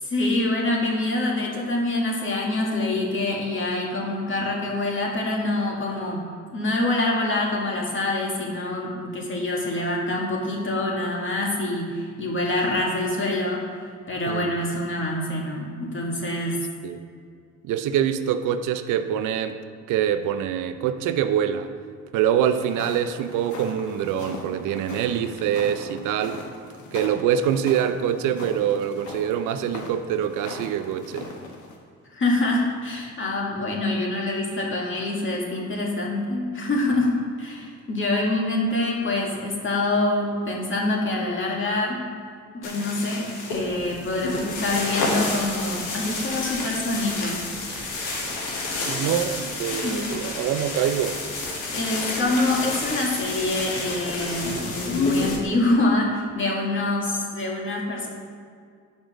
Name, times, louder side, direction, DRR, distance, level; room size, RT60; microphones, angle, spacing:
voice 1, 0.0-6.2 6.5-13.6 14.1-16.6 32.1-37.1 37.4-42.0 42.5-47.5 48.0-48.3 49.7-50.1 51.7-58.1, left 2 dB, 40° left, -2 dB, 1.9 m, -25 dB
voice 2, 17.6-19.6 19.9-21.7 22.1-26.4 26.9-31.3 48.8-51.2, right 9 dB, 90° right, 10 dB, 0.5 m, -25 dB
sound 1, 22.5-31.8, left 3 dB, 70° left, 1.3 m, -39 dB
sound 2, 42.6-55.4, left 3 dB, 85° left, 1.4 m, -29 dB
sound 3, 43.5-55.4, right 2 dB, 30° right, 1.4 m, -43 dB
7.1 x 5.1 x 6.2 m, 2.1 s
cardioid pair, 90°, 30 cm